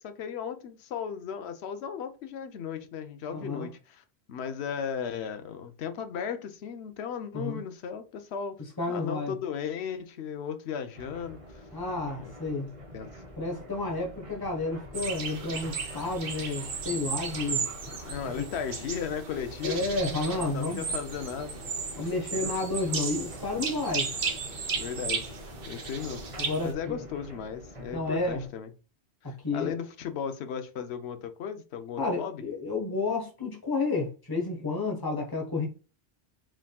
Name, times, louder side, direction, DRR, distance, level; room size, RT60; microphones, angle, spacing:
voice 1, 0.0-8.6 8.9-11.6 12.2-12.3 12.9-13.2 18.0-19.9 20.5-21.6 22.0-22.1 22.4-22.5 24.7-25.3 25.7-26.2 26.6-28.7 29.2-32.4, left 7 dB, 75° left, 0.9 m, -36 dB
voice 2, 3.3-3.7 7.3-7.6 8.8-9.3 11.7-12.8 13.4-17.7 19.6-20.8 22.0-24.1 26.4-26.7 27.9-28.4 29.2-29.7 32.0-35.7, left 3 dB, 20° left, 1.2 m, -31 dB
sound 1, 10.9-28.5, equal, 30° right, 1.0 m, -47 dB
sound 2, 14.9-26.7, right 5 dB, 60° right, 1.1 m, -35 dB
4.9 x 3.6 x 2.3 m
omnidirectional pair, 1.1 m